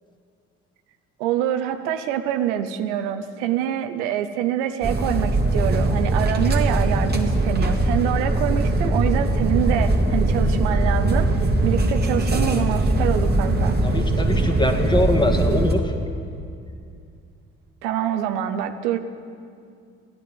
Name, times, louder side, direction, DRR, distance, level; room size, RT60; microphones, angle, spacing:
voice 1, 1.2-11.3 11.6-13.8 17.8-19.0, right 10 dB, 90° right, 8 dB, 0.7 m, -25 dB
sound 1, 4.8-15.7, right 2 dB, 30° right, 1.7 m, -21 dB
voice 2, 13.8-15.9, left 1 dB, 15° left, 4 dB, 1.8 m, -22 dB
15.0 x 9.6 x 7.1 m, 2.4 s
hypercardioid pair, 55°, 33 cm